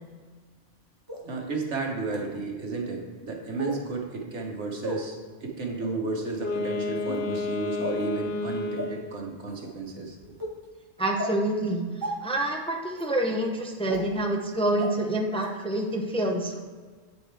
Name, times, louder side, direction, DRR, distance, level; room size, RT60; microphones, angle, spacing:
sound 1, 1.1-1.2 2.1-2.2 3.6-3.8 4.8-5.0 5.8-6.0 6.9-7.2 7.8-8.0 8.8-8.9 9.5-9.7 10.4-10.5 11.2-11.3 12.0-12.1 12.9-13.0 13.9-14.0 14.8-14.9 15.4-15.5, equal, 20° right, 1.3 m, -33 dB
voice 1, 1.2-10.3, right 3 dB, 85° right, 0 dB, 1.7 m, -33 dB
Wind instrument woodwind instrument, 6.3-9.2, left 3 dB, 65° left, 0.9 m, -31 dB
voice 2, 11.0-11.9 12.2-16.6, right 1 dB, 5° left, 1 dB, 0.6 m, -27 dB
8.5 x 7.7 x 3.4 m, 1.5 s
omnidirectional pair, 1.2 m